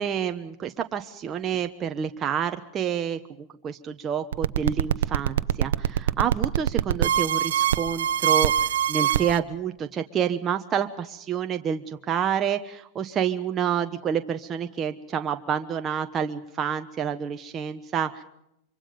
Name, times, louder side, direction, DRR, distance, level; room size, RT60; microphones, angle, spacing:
voice 1, 0.0-18.2, right 8 dB, 30° right, 6 dB, 1.1 m, -28 dB
sound 1, 4.3-9.4, right 10 dB, 85° right, 0.8 m, -23 dB
24.5 x 24.5 x 5.3 m, 0.80 s
hypercardioid pair, 125°, 0 cm